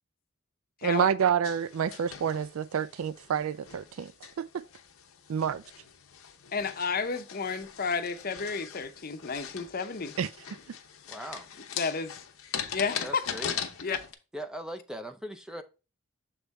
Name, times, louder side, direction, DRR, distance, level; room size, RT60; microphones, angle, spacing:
voice 1, 0.8-4.1 4.4-4.6 5.3-5.6 10.2-10.3, right 8 dB, 80° right, 0.4 m, -28 dB
sound 1, 1.4-14.1, left 8 dB, 80° left, 0.8 m, -41 dB
voice 2, 6.5-10.1 11.8-12.1 12.7-13.2 13.8-14.0, left 5 dB, 45° left, 0.7 m, -31 dB
voice 3, 11.1-11.5 13.0-13.6 14.3-15.6, equal, 5° right, 0.4 m, -39 dB
7.1 x 3.6 x 4.1 m
head